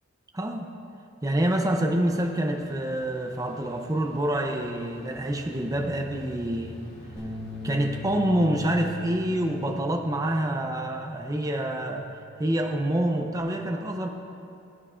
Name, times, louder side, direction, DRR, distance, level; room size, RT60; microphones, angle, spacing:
voice 1, 0.3-0.7 1.2-6.8 7.6-12.1 12.4-14.1, right 1 dB, 15° right, 3 dB, 0.6 m, -27 dB
sound 1, 1.8-9.8, equal, 50° left, 2.4 m, -48 dB
sound 2, 7.2-13.4, left 4 dB, ahead, 1.7 m, -41 dB
19.0 x 9.1 x 2.4 m, 2.6 s
head